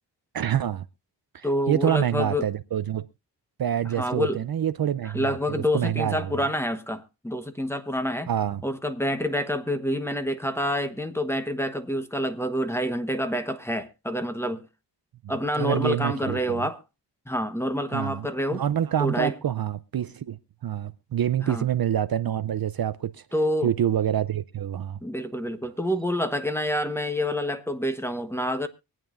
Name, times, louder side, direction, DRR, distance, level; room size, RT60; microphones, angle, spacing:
voice 1, 0.3-0.8 1.3-3.1 3.6-6.4 8.3-8.6 15.6-16.7 17.9-20.4 20.6-23.3 23.6-25.0, right 10 dB, 55° right, 0.6 m, -27 dB
voice 2, 1.4-2.5 4.0-4.4 5.0-8.3 8.6-14.6 15.3-16.8 17.3-18.6 19.0-19.3 21.4-21.7 23.3-23.7 25.0-28.7, equal, 5° left, 1.1 m, -27 dB
24.5 x 9.1 x 2.5 m
wide cardioid pair, 90°, 44 cm